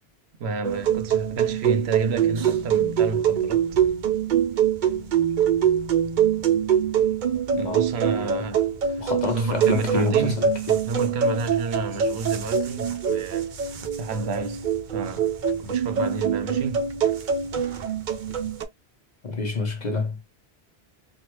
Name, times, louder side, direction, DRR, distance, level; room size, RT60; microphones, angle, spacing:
voice 1, 0.4-3.7 7.6-10.4 10.9-14.7 14.9-15.3 15.6-16.9, right 4 dB, 80° right, 0.9 m, -30 dB
sound 1, 0.6-18.6, right 8 dB, 55° right, 0.6 m, -24 dB
voice 2, 7.5-8.4 9.0-10.7 19.2-20.2, left 3 dB, 45° left, 1.0 m, -28 dB
3.2 x 2.3 x 3.0 m
omnidirectional pair, 1.1 m